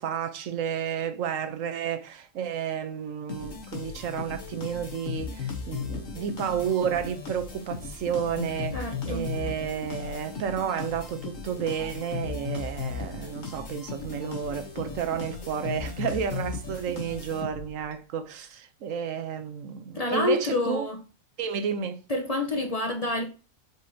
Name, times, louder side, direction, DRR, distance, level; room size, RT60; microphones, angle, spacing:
voice 1, 0.0-20.9 21.4-22.0, right 8 dB, 75° right, 1.1 m, -31 dB
sound 1, 3.3-17.9, left 5 dB, 70° left, 1.7 m, -36 dB
voice 2, 8.7-9.3 19.9-21.0 22.1-23.3, left 2 dB, 35° left, 0.8 m, -28 dB
7.8 x 4.9 x 2.8 m
omnidirectional pair, 1.4 m